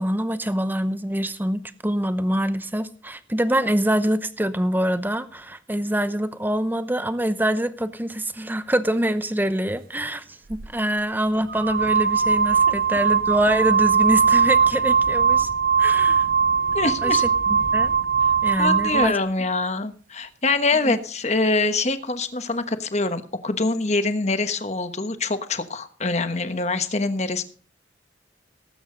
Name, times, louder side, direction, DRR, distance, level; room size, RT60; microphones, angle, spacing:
voice 1, 0.0-15.5 15.8-16.3 17.0-17.2 17.5-17.9 18.4-19.2 20.8-21.0, right 1 dB, 10° right, 12 dB, 0.8 m, -25 dB
sound 1, 10.5-10.7 11.5-19.2, right 6 dB, 45° right, 0.5 m, -20 dB
voice 2, 16.7-17.2 18.6-27.4, left 3 dB, 35° left, 10 dB, 1.2 m, -24 dB
18.5 x 8.7 x 3.9 m, 0.44 s
head